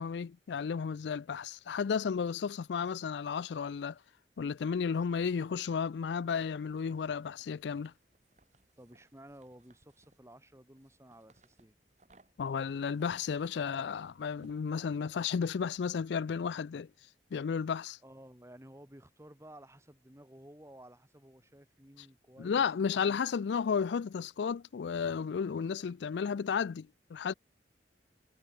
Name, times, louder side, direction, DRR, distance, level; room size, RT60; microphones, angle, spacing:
voice 1, 0.0-4.0 4.4-7.9 12.4-16.9 17.3-18.0 22.4-27.3, left 6 dB, 85° left, 0.4 m, -33 dB
sound 1, 6.0-15.8, right 1 dB, 40° right, 6.5 m, -67 dB
voice 2, 8.8-11.7 18.0-23.0, right 1 dB, 15° right, 3.5 m, -54 dB
head